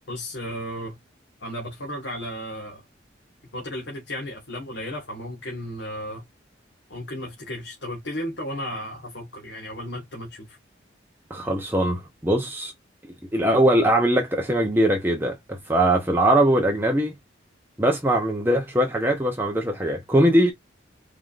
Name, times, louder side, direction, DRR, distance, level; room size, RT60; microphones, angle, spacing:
voice 1, 0.1-1.0 1.4-2.8 3.5-6.2 6.9-10.6, equal, 80° left, 1.7 m, -34 dB
voice 2, 11.3-12.7 13.3-17.1 17.8-20.5, right 1 dB, 10° right, 0.9 m, -21 dB
4.9 x 3.6 x 2.5 m
head